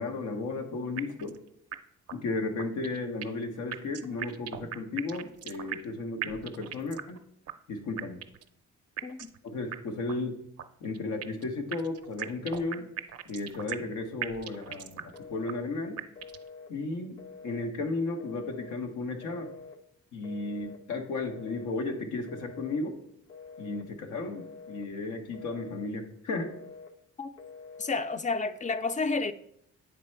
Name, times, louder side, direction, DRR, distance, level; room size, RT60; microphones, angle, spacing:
voice 1, 0.0-1.4 2.1-7.2 7.7-8.2 9.4-10.4 10.8-12.9 13.3-16.0 16.7-19.5 20.1-23.0 23.6-26.5, left 3 dB, 90° left, 1.0 m, -34 dB
sound 1, 1.0-1.4 1.7-1.8 2.1-2.2 2.6-3.4 3.7-5.9 6.2-7.2 7.5-7.6 8.0-8.5 9.0-9.4 9.7-9.8 10.1-10.2 10.6-11.4 11.7-13.9 14.2-15.2 15.5-15.6 16.0-16.5, right 10 dB, 55° right, 0.5 m, -38 dB
voice 2, 9.0-9.3 27.2-27.3 27.8-29.3, left 4 dB, 25° left, 0.4 m, -30 dB
Telephone, 15.1-15.7 16.2-16.7 17.2-17.7 18.2-18.8 19.2-19.8 20.2-20.8 21.3-21.8 22.3-22.8 23.3-23.9 24.3-24.9 25.3-25.9 26.4-26.9 27.4-27.9, left 5 dB, 45° left, 0.9 m, -47 dB
8.3 x 3.3 x 4.4 m
cardioid pair, 80°, 30 cm